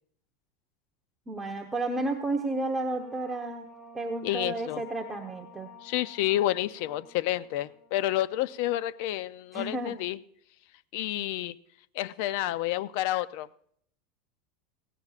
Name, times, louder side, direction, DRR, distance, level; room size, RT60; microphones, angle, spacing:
voice 1, 1.3-3.7 3.9-5.7 9.5-9.9, right 2 dB, 10° right, 2 dB, 1.0 m, -32 dB
sound 1, 2.0-9.1, left 3 dB, 10° left, 1.9 m, -52 dB
voice 2, 4.2-4.8 5.8-10.2 10.9-11.6 11.9-13.5, left 14 dB, 60° left, 17 dB, 0.4 m, -29 dB
17.5 x 16.5 x 2.4 m, 0.65 s
supercardioid pair, 145°, 0 cm